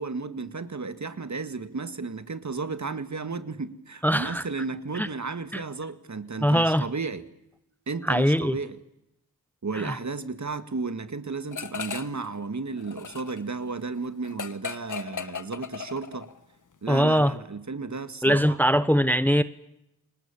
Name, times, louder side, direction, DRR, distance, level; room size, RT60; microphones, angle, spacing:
voice 1, 0.0-7.3 7.9-8.8 9.6-16.3 16.8-18.6, right 4 dB, 50° right, 1.9 m, -33 dB
voice 2, 4.0-4.4 4.9-5.1 5.5-5.6 6.4-6.9 8.0-8.6 9.7-9.9 16.9-17.3 18.2-19.4, equal, 5° left, 1.0 m, -22 dB
sound 1, 11.5-12.3 12.6-16.4, left 6 dB, 55° left, 1.3 m, -37 dB
29.5 x 20.0 x 7.1 m
cardioid pair, 40°, 38 cm